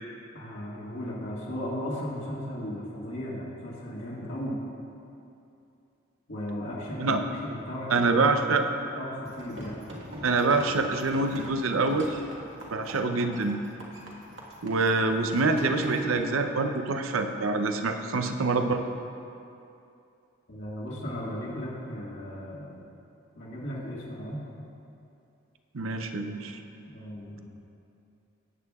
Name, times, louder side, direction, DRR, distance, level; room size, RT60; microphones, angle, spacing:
voice 1, 0.3-4.6 6.3-9.8 18.0-18.1 20.5-22.8 23.3-24.4 26.9-27.5, equal, 65° left, -7 dB, 1.8 m, -36 dB
voice 2, 7.9-8.6 10.2-12.1 12.7-13.6 14.6-18.8 25.7-26.6, right 3 dB, 85° right, 6 dB, 0.7 m, -25 dB
sound 1, 9.3-16.2, equal, 60° right, 1.7 m, -43 dB
18.0 x 8.5 x 2.4 m, 2.6 s
head